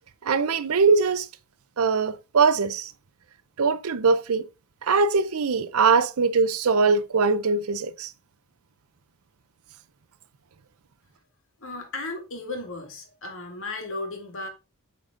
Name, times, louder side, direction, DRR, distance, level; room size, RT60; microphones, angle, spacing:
voice 1, 0.2-1.3 1.8-2.9 3.6-4.5 4.9-8.1, right 4 dB, 75° right, 0.6 m, -22 dB
voice 2, 11.6-14.5, left 2 dB, 65° left, 2.1 m, -35 dB
8.5 x 4.0 x 3.7 m
head